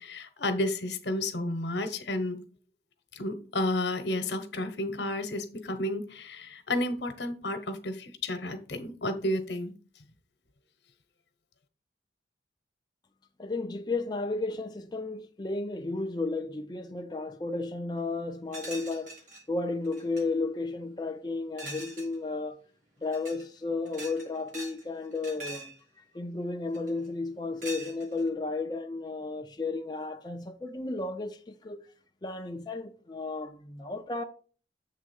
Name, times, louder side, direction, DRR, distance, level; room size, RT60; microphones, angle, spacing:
voice 1, 0.0-2.4 3.1-9.7, left 1 dB, 70° left, 1.0 m, -31 dB
voice 2, 13.4-19.2 19.5-22.6 23.0-25.7 26.1-31.8 32.2-34.2, left 3 dB, 25° left, 0.5 m, -33 dB
sound 1, 18.5-19.4 19.8-20.2 21.6-22.2 23.0-23.4 23.9-24.8 25.1-25.8 26.7-27.1 27.6-28.3, right 1 dB, 45° right, 1.7 m, -43 dB
7.5 x 3.5 x 5.3 m
head